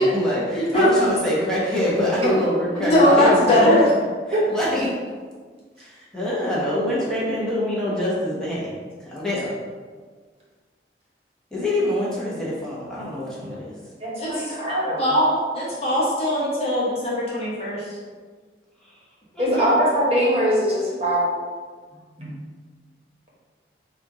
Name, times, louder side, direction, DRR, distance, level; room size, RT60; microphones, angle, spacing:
voice 1, 0.0-3.7 4.5-4.9 5.8-8.7 9.0-9.6 11.5-13.7 18.8-18.9 19.3-19.7, left 1 dB, 5° left, -7 dB, 1.0 m, -25 dB
voice 2, 0.6-0.9 2.8-3.9 14.2-14.5 15.0-18.0, left 1 dB, 35° left, -7 dB, 1.2 m, -20 dB
voice 3, 14.0-15.0 19.4-21.3 22.2-22.3, equal, 35° right, -6 dB, 1.2 m, -21 dB
4.2 x 2.6 x 4.8 m, 1.5 s
head